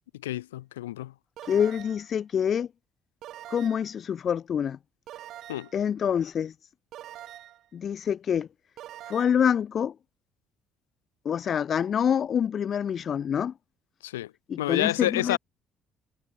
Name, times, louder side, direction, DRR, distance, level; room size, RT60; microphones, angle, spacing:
voice 1, 0.2-1.1 5.5-5.7 14.0-14.3 14.6-15.4, left 15 dB, 80° left, 0.4 m, -29 dB
sound 1, 1.4-2.1 3.2-3.9 5.1-5.8 6.9-7.7 8.8-9.4, right 13 dB, 60° right, 1.7 m, -44 dB
voice 2, 1.5-2.7 3.5-4.8 5.7-6.5 7.7-8.5 9.1-9.9 11.2-13.5 14.5-15.4, left 8 dB, 50° left, 1.2 m, -26 dB
hypercardioid pair, 50°, 0 cm